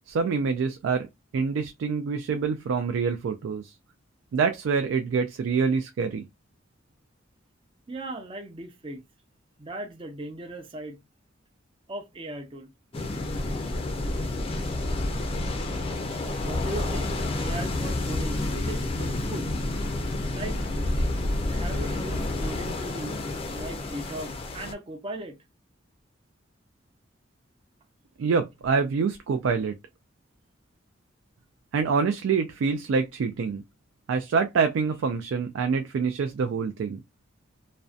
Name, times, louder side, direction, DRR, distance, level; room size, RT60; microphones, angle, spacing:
voice 1, 0.1-1.1 1.3-3.7 4.3-6.2 28.2-29.7 31.7-33.6 34.1-37.0, right 5 dB, 90° right, 0.3 m, -26 dB
voice 2, 7.9-9.0 9.6-11.0 11.9-12.7 16.4-19.5 20.3-20.6 21.5-23.2 23.5-25.4, right 1 dB, 30° right, 0.5 m, -38 dB
sound 1, 12.9-24.7, left 2 dB, 30° left, 0.4 m, -29 dB
2.5 x 2.1 x 2.4 m
head